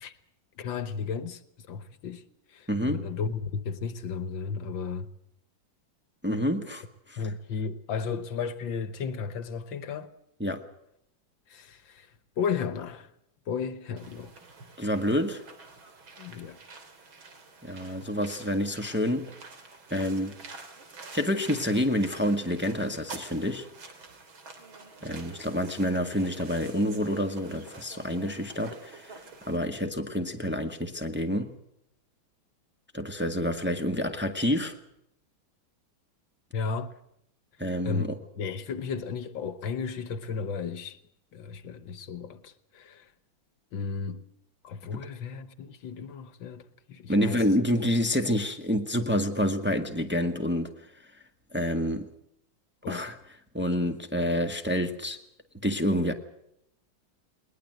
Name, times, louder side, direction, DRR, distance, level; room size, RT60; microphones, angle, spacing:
voice 1, 0.6-5.1 7.2-10.1 11.5-12.1 12.4-13.1 13.5-14.3 16.2-16.6 36.5-36.9 37.9-41.0 41.3-43.1 43.7-44.3 44.6-47.4 52.8-53.2, left 5 dB, 70° left, 1.9 m, -34 dB
voice 2, 2.7-3.0 6.2-7.2 10.4-10.6 14.8-15.4 17.6-19.3 19.9-20.4 21.1-23.7 25.0-29.2 29.4-31.5 32.9-34.8 37.6-38.2 44.9-45.0 47.1-50.7 51.5-52.1 52.9-53.1 53.5-55.2 55.6-56.1, equal, 5° right, 1.6 m, -28 dB
sound 1, 14.0-29.6, right 4 dB, 75° right, 3.8 m, -47 dB
21.0 x 20.5 x 8.0 m
omnidirectional pair, 2.2 m